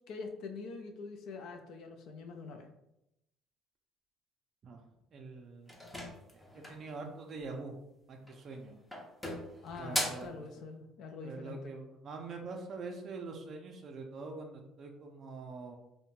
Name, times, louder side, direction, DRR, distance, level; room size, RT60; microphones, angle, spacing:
voice 1, 0.1-2.7 9.6-11.7, left 4 dB, 65° left, 5 dB, 0.4 m, -45 dB
voice 2, 5.1-5.8 6.3-7.8 8.1-8.7 9.8-10.3 11.2-15.8, right 3 dB, 45° right, 3 dB, 0.4 m, -44 dB
sound 1, 5.7-6.9 8.2-8.6 8.9-10.4, equal, 10° left, 0.5 m, -38 dB
2.6 x 2.1 x 3.0 m, 0.86 s
cardioid pair, 120°, 0 cm